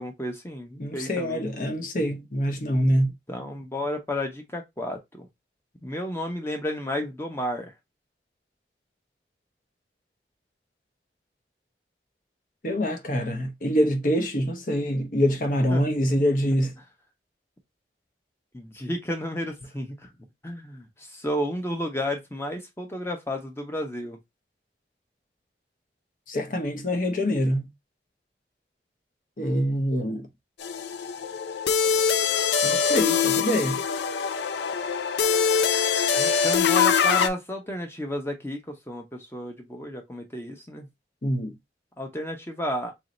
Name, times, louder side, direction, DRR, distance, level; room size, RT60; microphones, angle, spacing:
voice 1, 0.0-1.5 3.3-5.3 5.8-7.7 15.7-15.9 18.5-20.1 20.4-24.2 36.2-40.9 42.0-42.9, equal, 15° left, 0.8 m, -32 dB
voice 2, 0.8-3.1 12.6-16.7 26.3-27.7 29.4-30.3 32.6-33.8 41.2-41.6, equal, 50° left, 0.8 m, -25 dB
sound 1, 30.6-37.3, left 6 dB, 80° left, 0.4 m, -23 dB
3.1 x 2.7 x 3.9 m
head